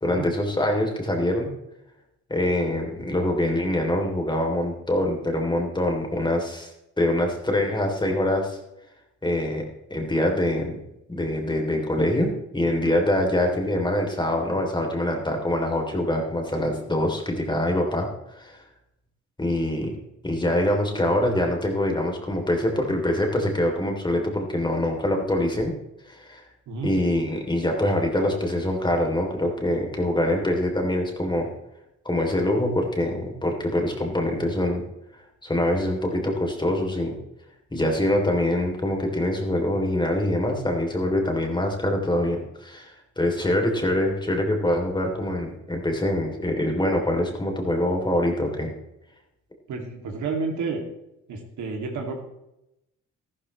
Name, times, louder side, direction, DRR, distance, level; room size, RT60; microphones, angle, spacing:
voice 1, 0.0-1.5 2.3-6.7 7.0-8.6 9.2-10.8 11.1-18.1 18.4-18.6 19.4-19.9 20.2-25.7 26.1-26.4 26.8-31.5 32.0-34.8 35.4-37.1 37.7-48.7, left 1 dB, 15° left, 2 dB, 3.2 m, -24 dB
voice 2, 49.7-50.8 51.3-52.2, right 4 dB, 70° right, 2 dB, 2.7 m, -30 dB
13.5 x 13.0 x 3.2 m, 0.87 s
cardioid pair, 90°, 30 cm